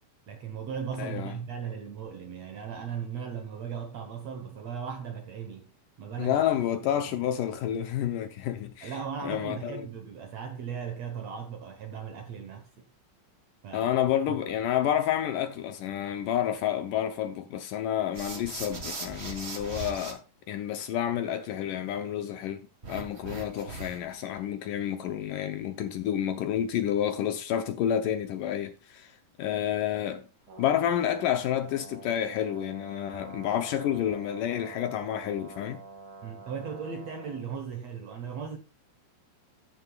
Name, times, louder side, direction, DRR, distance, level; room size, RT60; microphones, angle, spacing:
voice 1, 0.3-5.7 6.0-6.4 6.8-7.0 8.8-12.9 13.6-14.0 14.3-14.4 36.2-38.6, right 7 dB, 60° right, 1.8 m, -37 dB
voice 2, 1.0-1.4 6.2-8.9 9.2-9.9 13.7-20.2 20.5-29.1 29.4-30.3 30.6-35.8, left 10 dB, 75° left, 2.2 m, -29 dB
sound 1, 18.1-20.1 22.8-24.2, right 3 dB, 85° right, 0.5 m, -39 dB
Brass instrument, 30.5-37.5, right 3 dB, 40° right, 2.4 m, -47 dB
13.0 x 10.0 x 2.4 m
omnidirectional pair, 4.3 m